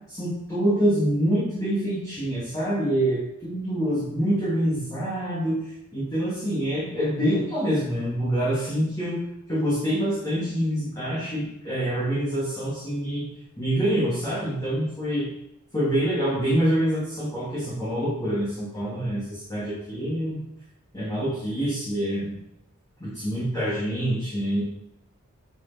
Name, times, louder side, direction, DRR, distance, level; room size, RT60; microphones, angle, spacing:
voice 1, 0.1-5.6 5.9-9.2 9.5-13.3 13.6-15.3 15.7-20.4 20.9-22.3 23.0-24.6, right 1 dB, 15° left, -10 dB, 2.7 m, -26 dB
7.6 x 7.2 x 4.5 m, 0.84 s
head